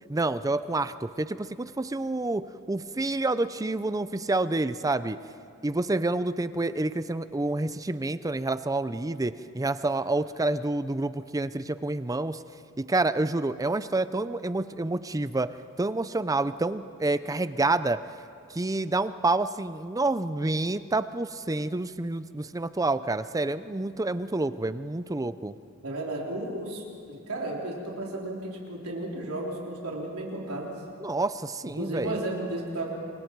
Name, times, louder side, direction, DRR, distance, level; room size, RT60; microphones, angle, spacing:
voice 1, 0.1-5.2 5.6-12.4 12.8-15.5 15.8-18.0 18.5-25.5 31.0-32.1, right 2 dB, 15° right, 13 dB, 0.5 m, -28 dB
voice 2, 25.8-30.8 31.8-32.9, right 1 dB, 70° right, -2 dB, 3.8 m, -33 dB
28.5 x 24.0 x 4.7 m, 2.3 s
head